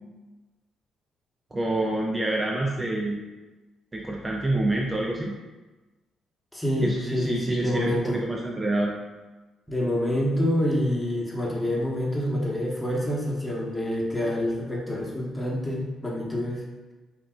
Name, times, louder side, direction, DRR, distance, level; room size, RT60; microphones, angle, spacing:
voice 1, 1.5-3.2 3.9-5.4 6.8-8.9, right 2 dB, 20° right, -1 dB, 0.4 m, -27 dB
voice 2, 6.5-8.2 9.7-16.6, left 1 dB, 10° left, -4 dB, 1.0 m, -27 dB
5.7 x 2.5 x 2.4 m, 1.2 s
cardioid pair, 90°, 0 cm